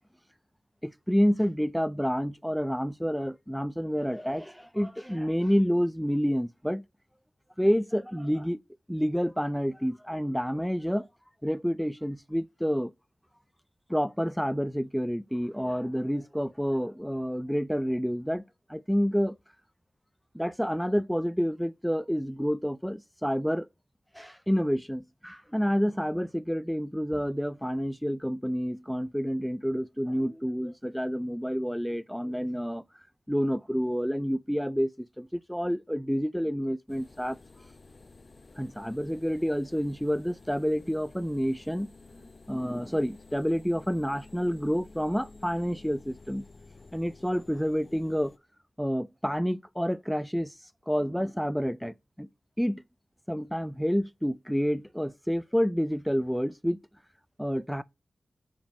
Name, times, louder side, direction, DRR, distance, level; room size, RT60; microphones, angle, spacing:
voice 1, 0.8-6.8 7.6-8.6 8.9-11.1 11.4-12.9 13.9-18.4 18.7-19.4 20.3-23.7 24.1-32.8 33.3-37.4 38.6-41.9 42.5-46.4 46.9-48.3 48.8-50.5 50.9-52.3 52.6-52.8 53.3-56.8 57.4-57.8, equal, ahead, 0.4 m, -29 dB
sound 1, 36.9-48.4, left 3 dB, 40° left, 0.7 m, -52 dB
5.2 x 5.1 x 6.4 m
wide cardioid pair, 120°, 0 cm